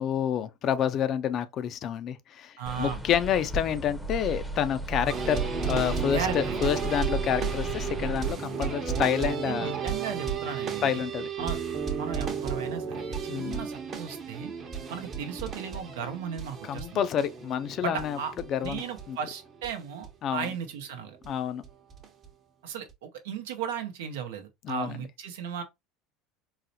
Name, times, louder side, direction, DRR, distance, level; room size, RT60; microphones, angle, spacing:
voice 1, 0.0-9.7 10.8-11.3 13.3-13.7 16.6-18.2 18.5-19.2 20.2-20.5 21.2-21.6 24.6-25.1, left 9 dB, 50° left, 0.4 m, -29 dB
voice 2, 2.6-3.0 6.1-6.6 9.4-11.0 11.4-11.6 12.0-14.5 14.9-17.0 17.8-18.3 18.6-21.2 22.6-25.6, right 7 dB, 85° right, 0.7 m, -36 dB
sound 1, 2.7-8.3, right 2 dB, ahead, 0.6 m, -35 dB
sound 2, 5.0-19.7 20.0-20.1 20.4-20.5 21.2-21.3 21.6-22.3 22.9-23.0, right 6 dB, 45° right, 0.8 m, -34 dB
4.0 x 2.0 x 2.6 m
supercardioid pair, 95°, 0 cm